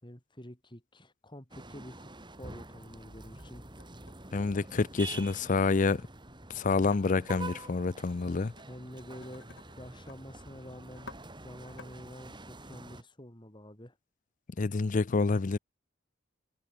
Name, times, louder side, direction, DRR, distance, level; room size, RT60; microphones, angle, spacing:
voice 1, 0.0-2.1 2.4-3.6 8.6-9.5 9.8-11.1 11.4-14.0, left 1 dB, 25° left, 4.8 m, -48 dB
sound 1, 1.5-13.0, right 2 dB, 25° right, 6.7 m, -47 dB
sound 2, 3.1-3.4 3.8-5.2 6.9-7.0 8.4-8.6 8.9-10.2 10.5-10.6 10.9-11.2 11.7-11.9, left 3 dB, 65° left, 3.5 m, -52 dB
voice 2, 4.3-6.0 6.5-8.5 14.6-15.6, left 4 dB, 40° left, 0.5 m, -28 dB
head